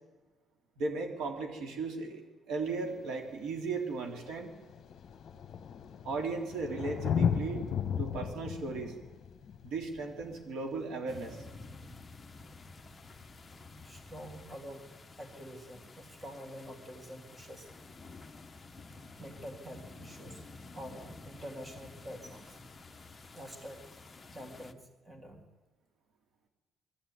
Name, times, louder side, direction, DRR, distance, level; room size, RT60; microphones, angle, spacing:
voice 1, 0.8-4.5 6.0-7.7 8.0-9.0 9.6-11.5, right 4 dB, 85° right, 3 dB, 3.5 m, -36 dB
Thunder, 2.7-2.8 3.8-3.9 4.1-11.4 13.1-13.2, left 7 dB, 45° left, 1.3 m, -35 dB
sound 1, 11.1-24.7, left 3 dB, 15° left, 0.9 m, -51 dB
voice 2, 13.8-14.9 15.2-17.7 19.2-20.4 20.7-22.6 23.3-23.9 24.3-25.5, equal, 15° right, 4 dB, 2.2 m, -46 dB
22.0 x 14.0 x 9.6 m, 1.2 s
cardioid pair, 170°, 0 cm